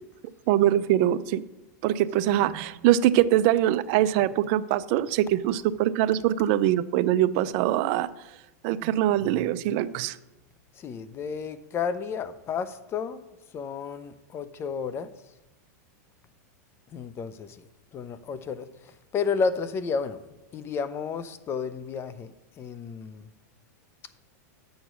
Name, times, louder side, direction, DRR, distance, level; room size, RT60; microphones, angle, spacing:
voice 1, 0.5-1.4 1.8-8.1 8.6-10.2, right 12 dB, 50° right, 0.5 m, -23 dB
voice 2, 10.7-13.2 13.5-15.1 16.9-20.2 20.5-23.3, left 5 dB, 25° left, 0.6 m, -32 dB
8.0 x 6.3 x 6.0 m
hypercardioid pair, 130°, 9 cm